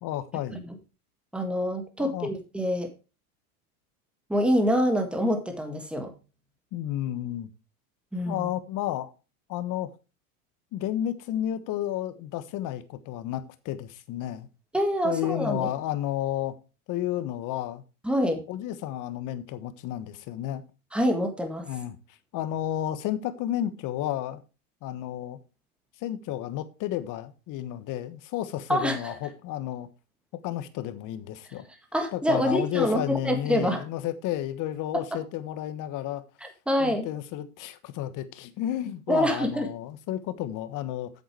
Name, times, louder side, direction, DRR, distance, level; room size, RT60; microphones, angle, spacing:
voice 1, 0.0-0.6 2.0-2.3 6.7-7.5 8.3-9.1 9.5-9.9 10.7-14.5 15.0-16.5 16.9-17.8 18.5-20.6 21.7-22.0 22.3-24.4 24.8-25.4 26.0-29.9 30.4-31.6 32.1-36.2 36.8-41.1, left 12 dB, 45° left, 1.3 m, -32 dB
voice 2, 1.3-2.9 4.3-6.1 8.1-8.5 14.7-15.7 18.0-18.4 20.9-21.7 28.7-29.2 31.9-33.8 35.1-35.2 36.7-37.1 39.1-39.7, equal, ahead, 1.7 m, -26 dB
8.1 x 7.5 x 4.7 m
supercardioid pair, 110°, 43 cm